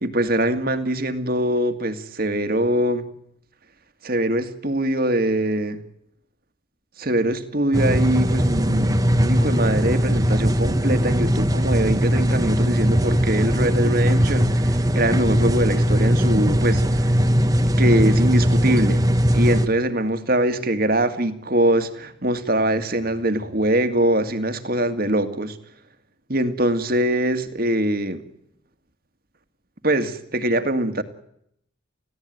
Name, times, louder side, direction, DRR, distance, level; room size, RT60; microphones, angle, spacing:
voice 1, 0.0-3.1 4.0-5.8 7.0-17.1 17.8-19.0 19.3-25.6 26.3-28.2 29.8-31.0, right 1 dB, 45° right, 2.1 m, -23 dB
sound 1, 7.7-19.7, equal, 15° right, 1.2 m, -19 dB
30.0 x 16.0 x 9.4 m
head